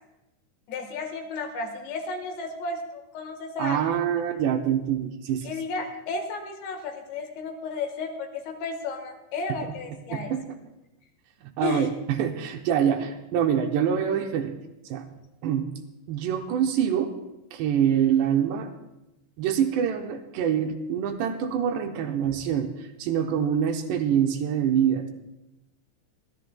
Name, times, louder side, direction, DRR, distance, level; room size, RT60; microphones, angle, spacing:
voice 1, 0.7-4.0 5.4-10.3 11.6-11.9 22.3-22.4, left 3 dB, 80° left, 5 dB, 3.6 m, -33 dB
voice 2, 3.6-5.5 9.6-9.7 10.1-10.4 11.4-14.5 14.9-15.0 15.4-15.7 16.1-17.1 17.5-18.7 19.4-25.1, right 8 dB, 80° right, 4 dB, 2.9 m, -25 dB
27.0 x 12.5 x 2.3 m, 0.93 s
omnidirectional pair, 5.2 m